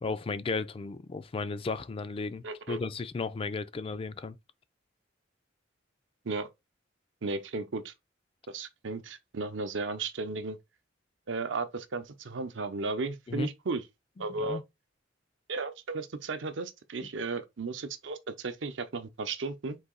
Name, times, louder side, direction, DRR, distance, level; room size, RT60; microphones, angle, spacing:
voice 1, 0.0-4.4 13.3-13.5 14.4-14.6, left 4 dB, 30° left, 0.3 m, -34 dB
voice 2, 2.4-2.8 6.2-6.5 7.2-7.9 8.5-10.6 11.3-13.8 14.2-14.6 15.5-19.8, right 3 dB, 70° right, 0.7 m, -35 dB
4.0 x 2.7 x 3.8 m
head